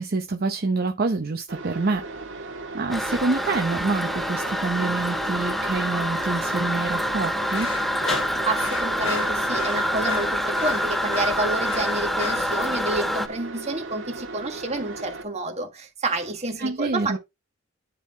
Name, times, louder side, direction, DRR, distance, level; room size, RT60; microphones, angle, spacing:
voice 1, 0.0-2.1 2.7-7.7 16.6-17.2, right 3 dB, 50° right, 0.7 m, -26 dB
sound 1, 1.5-15.2, right 3 dB, 70° right, 2.1 m, -37 dB
Toilet flush, 2.9-13.3, equal, ahead, 0.5 m, -26 dB
sound 2, 7.5-12.5, left 4 dB, 70° left, 1.4 m, -33 dB
voice 2, 8.4-17.2, right 2 dB, 35° right, 1.7 m, -29 dB
9.9 x 3.7 x 4.3 m
head